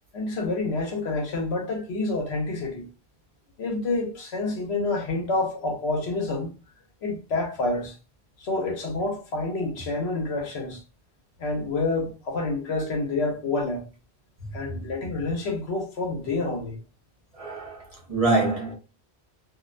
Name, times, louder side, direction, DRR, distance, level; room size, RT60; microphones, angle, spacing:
voice 1, 0.1-2.8 3.6-6.5 7.0-8.0 8.4-10.8 11.4-13.8 14.5-16.8, left 2 dB, 85° left, 1.1 m, -28 dB
voice 2, 17.3-18.7, right 2 dB, 35° right, 0.9 m, -25 dB
2.5 x 2.1 x 2.4 m
omnidirectional pair, 1.1 m